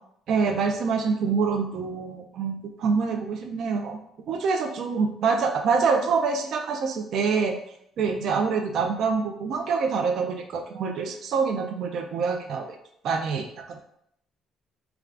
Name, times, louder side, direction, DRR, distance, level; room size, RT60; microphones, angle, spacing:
voice 1, 0.3-4.0 4.3-7.6 8.0-12.7 13.0-13.8, right 5 dB, 55° right, 4 dB, 0.3 m, -26 dB
2.4 x 2.3 x 3.3 m, 0.72 s
cardioid pair, 145°, 0 cm